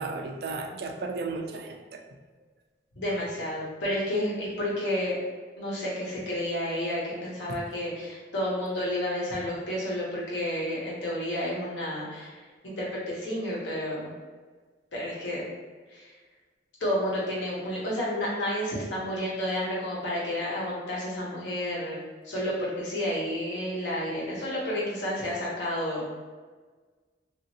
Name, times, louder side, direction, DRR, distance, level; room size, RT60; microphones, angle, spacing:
voice 1, 0.0-2.0 7.5-7.6 24.1-24.4, right 3 dB, 60° right, 5 dB, 0.3 m, -35 dB
voice 2, 2.9-5.2 5.6-12.4 12.6-14.1 14.9-15.5 15.9-16.1 16.8-22.0 22.2-26.3, left 1 dB, 85° left, -6 dB, 1.1 m, -31 dB
2.9 x 2.6 x 2.8 m, 1.4 s
head